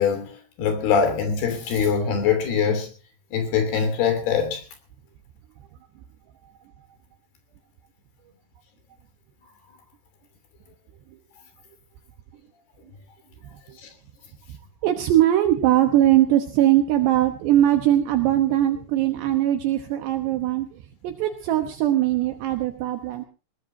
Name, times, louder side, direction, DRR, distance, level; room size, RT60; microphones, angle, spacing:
voice 1, 0.0-2.9 3.3-4.6 13.8-13.9, left 6 dB, 60° left, 4.9 m, -23 dB
voice 2, 14.8-23.2, right 12 dB, 75° right, 3.1 m, -21 dB
21.0 x 18.5 x 2.7 m
omnidirectional pair, 5.3 m